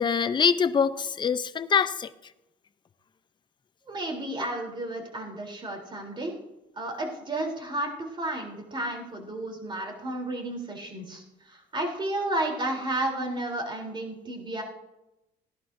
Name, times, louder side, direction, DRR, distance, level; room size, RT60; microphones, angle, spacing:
voice 1, 0.0-2.1, left 6 dB, 25° left, 0.6 m, -24 dB
voice 2, 3.9-6.4 6.7-14.6, right 1 dB, 30° right, 3.4 m, -32 dB
17.0 x 11.0 x 2.6 m
cardioid pair, 110°, 17 cm